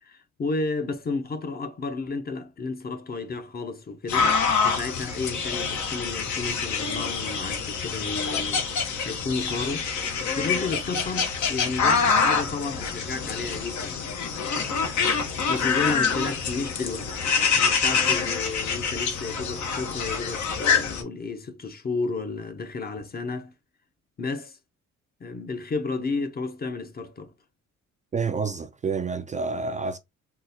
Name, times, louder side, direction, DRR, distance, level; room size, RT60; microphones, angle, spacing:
voice 1, 0.0-4.3 4.6-9.9 10.3-14.1 15.5-17.3 17.5-23.5 24.2-24.6 25.2-27.3, left 3 dB, 30° left, 0.7 m, -32 dB
sound 1, 4.1-21.0, left 5 dB, 70° left, 1.0 m, -26 dB
voice 2, 28.1-30.0, right 4 dB, 25° right, 0.4 m, -28 dB
3.8 x 2.4 x 2.7 m
cardioid pair, 90°, 30 cm